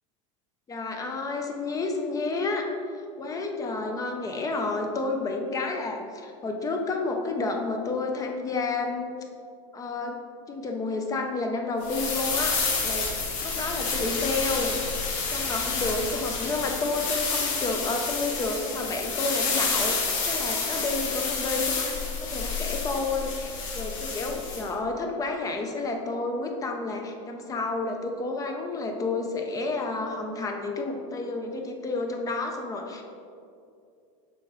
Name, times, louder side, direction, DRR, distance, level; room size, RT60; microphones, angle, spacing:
voice 1, 0.7-2.7 3.2-9.1 9.7-10.2 10.5-13.1 13.4-15.0 15.3-33.0, left 3 dB, 20° left, 3 dB, 0.6 m, -30 dB
sound 1, 11.8-24.7, left 4 dB, 75° left, 1.3 m, -29 dB
6.9 x 4.8 x 3.1 m, 2.4 s
supercardioid pair, 135°, 17 cm